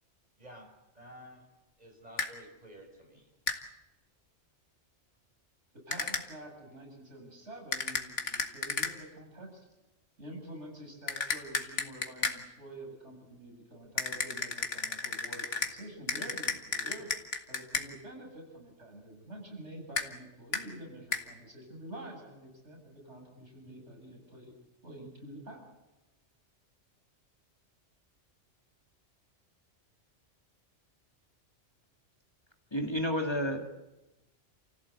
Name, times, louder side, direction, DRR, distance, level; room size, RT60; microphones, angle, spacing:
voice 1, 0.9-1.4 1.8-3.3, equal, 35° right, 2 dB, 6.6 m, -51 dB
sound 1, 2.2-2.3 3.5-3.6 5.9-6.3 7.7-8.9 11.1-12.4 14.0-15.7 16.1-17.9 20.0-20.1 20.5-20.7 21.1-21.2, left 4 dB, 90° left, 2.2 m, -33 dB
voice 2, 5.9-9.5 10.2-17.1 17.5-24.5 24.8-25.6, right 1 dB, 75° right, 1 dB, 7.6 m, -47 dB
voice 3, 32.7-33.7, equal, 20° left, 3 dB, 2.2 m, -30 dB
29.5 x 15.5 x 8.4 m, 0.99 s
omnidirectional pair, 1.2 m